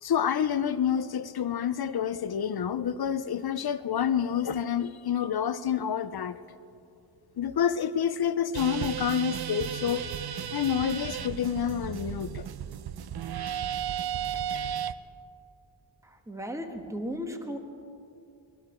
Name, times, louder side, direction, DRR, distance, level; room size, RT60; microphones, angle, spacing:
voice 1, 0.0-6.6 7.4-10.0 10.5-12.5, left 8 dB, 55° left, 13 dB, 0.6 m, -28 dB
sound 1, 8.5-14.9, right 9 dB, 55° right, 0.6 m, -34 dB
voice 2, 16.0-17.6, equal, 5° right, 4 dB, 1.4 m, -36 dB
20.5 x 12.5 x 4.4 m, 2.6 s
wide cardioid pair, 80°, 47 cm